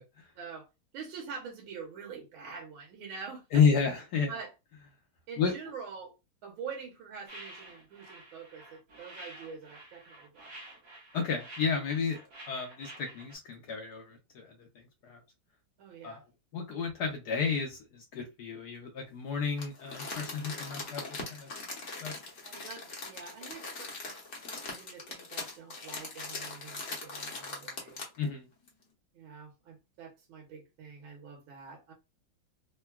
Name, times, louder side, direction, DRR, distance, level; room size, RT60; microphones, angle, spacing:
voice 1, 0.3-0.7 0.9-3.6 4.3-4.5 5.3-6.2 6.4-10.5 15.8-16.2 22.4-24.2 24.5-28.0 29.1-31.9, right 6 dB, 70° right, 1.6 m, -45 dB
voice 2, 3.5-4.3 5.4-5.5 11.1-15.2 16.0-16.2 16.5-21.5 22.0-22.1 28.2-28.5, left 5 dB, 70° left, 1.0 m, -31 dB
sound 1, 7.3-13.4, right 1 dB, 55° right, 1.1 m, -50 dB
Crumpling crinkling, 19.6-28.2 28.7-28.8, left 3 dB, 45° left, 1.0 m, -41 dB
3.8 x 2.2 x 2.2 m
omnidirectional pair, 2.3 m